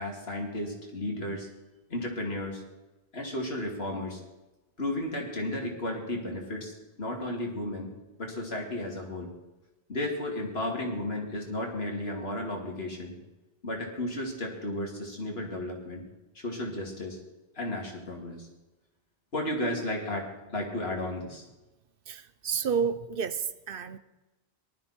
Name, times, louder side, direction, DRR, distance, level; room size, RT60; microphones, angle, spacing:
voice 1, 0.0-1.5 1.9-2.6 3.1-4.2 4.8-7.9 8.2-9.3 9.9-13.1 13.6-16.0 16.3-17.2 17.5-18.5 19.3-21.4, left 1 dB, 75° left, 3.0 m, -33 dB
voice 2, 22.1-24.0, right 6 dB, 65° right, 0.9 m, -30 dB
19.0 x 13.0 x 4.4 m
omnidirectional pair, 1.0 m